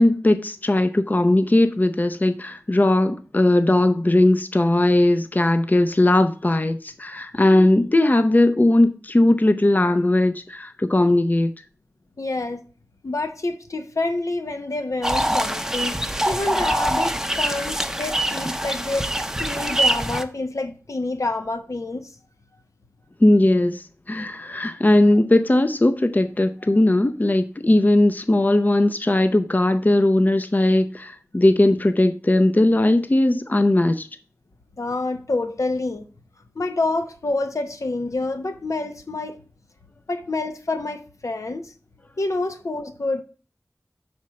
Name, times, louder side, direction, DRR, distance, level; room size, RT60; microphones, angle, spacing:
voice 1, 0.0-11.5 23.2-34.1, left 1 dB, 35° left, 0.5 m, -18 dB
voice 2, 12.2-12.6 13.0-16.0 16.3-19.1 19.4-22.1 34.8-36.0 36.5-39.4 40.1-41.7 42.2-43.2, left 2 dB, 80° left, 0.9 m, -27 dB
sound 1, 15.0-20.2, right 1 dB, 10° right, 0.6 m, -24 dB
5.7 x 4.3 x 6.2 m
wide cardioid pair, 50°, 5 cm